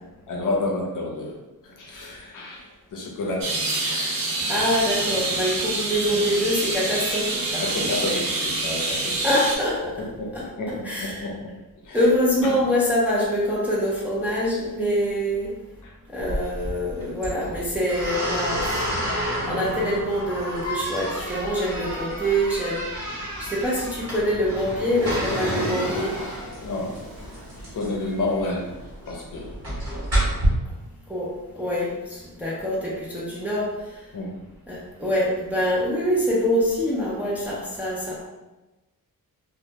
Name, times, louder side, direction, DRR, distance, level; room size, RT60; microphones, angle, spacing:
voice 1, 0.3-1.4 1.6-4.5 7.6-9.2 10.2-10.3 10.6-11.5 11.8-12.0 12.4-12.6 15.8-15.9 26.6-27.0 27.6-28.7 29.0-29.6 34.1-34.4, left 2 dB, 60° left, -2 dB, 0.6 m, -30 dB
sound 1, 3.4-9.6, right 2 dB, 70° right, 0.5 m, -26 dB
voice 2, 4.5-8.2 9.2-10.0 10.3-11.3 11.9-15.6 16.1-18.9 19.5-22.9 23.4-26.1 31.1-34.0 34.7-38.3, equal, 5° right, -6 dB, 0.4 m, -25 dB
sound 2, 16.2-30.5, right 1 dB, 45° right, 0.9 m, -30 dB
Waves surf, 23.1-30.2, left 1 dB, 20° left, 0.7 m, -35 dB
2.2 x 2.1 x 2.7 m, 1.1 s
wide cardioid pair, 165°, 36 cm